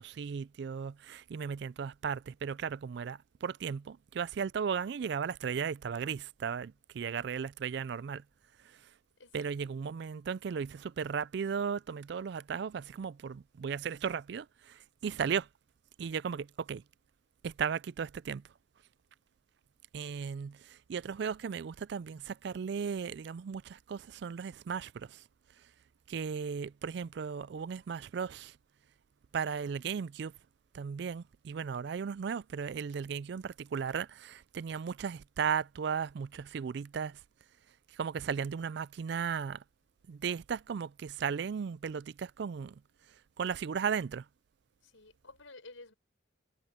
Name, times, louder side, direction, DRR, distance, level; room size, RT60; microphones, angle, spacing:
voice 1, 0.0-8.2 8.6-8.9 9.3-15.5 16.0-16.8 17.4-18.4 19.9-25.2 25.6-25.7 26.1-28.6 29.3-30.3 30.7-37.2 37.9-39.6 40.1-42.8 43.4-44.3, right 6 dB, 55° right, 0.3 m, -36 dB
voice 2, 9.2-9.6 44.8-45.9, left 3 dB, 80° left, 5.7 m, -53 dB
head